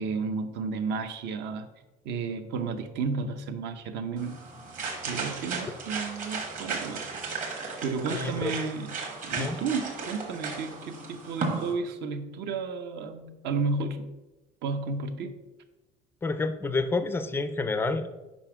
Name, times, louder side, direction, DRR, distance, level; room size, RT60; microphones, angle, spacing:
voice 1, 0.0-1.7 2.0-4.4 5.0-7.1 7.8-8.9 9.2-14.0 14.6-15.4, right 4 dB, 60° right, 9 dB, 0.7 m, -32 dB
sound 1, 4.2-11.7, right 4 dB, 40° right, 1.4 m, -35 dB
voice 2, 8.1-8.5 9.4-9.6 16.2-18.1, left 3 dB, 10° left, 10 dB, 0.3 m, -29 dB
5.5 x 5.0 x 5.9 m, 1.1 s
cardioid pair, 165°, 21 cm